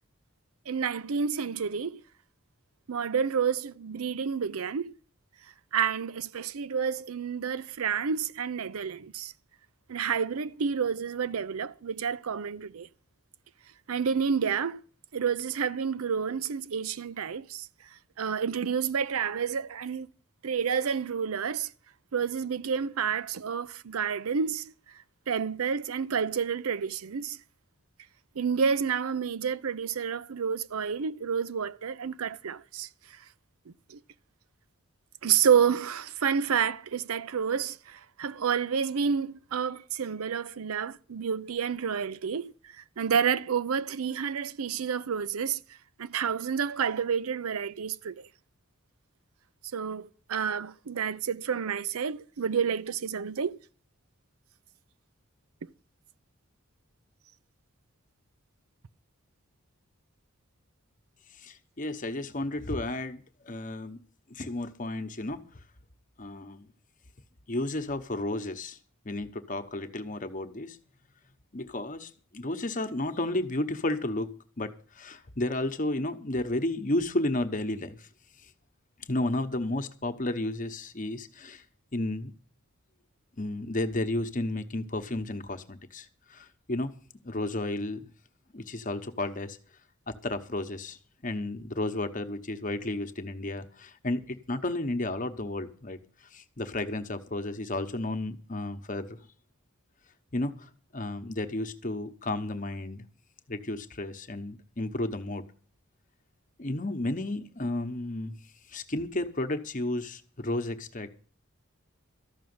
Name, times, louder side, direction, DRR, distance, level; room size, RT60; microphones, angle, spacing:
voice 1, 0.7-2.0 2.9-5.0 5.7-9.3 9.9-12.9 13.9-14.8 15.1-17.7 18.2-20.1 20.4-21.7 22.1-24.7 25.3-27.4 28.4-33.2 33.7-34.0 35.2-45.6 46.0-48.3 49.7-53.6, right 7 dB, 80° right, 0.6 m, -29 dB
voice 2, 61.4-64.0 64.3-65.4 66.2-66.7 67.5-68.8 69.0-70.8 71.5-78.1 79.1-81.6 81.9-82.3 83.4-86.9 87.2-88.1 88.5-89.6 90.1-91.0 91.2-99.2 100.3-103.1 103.5-105.4 106.6-108.3 108.7-111.1, left 2 dB, 35° left, 1.0 m, -32 dB
13.5 x 6.3 x 9.5 m
head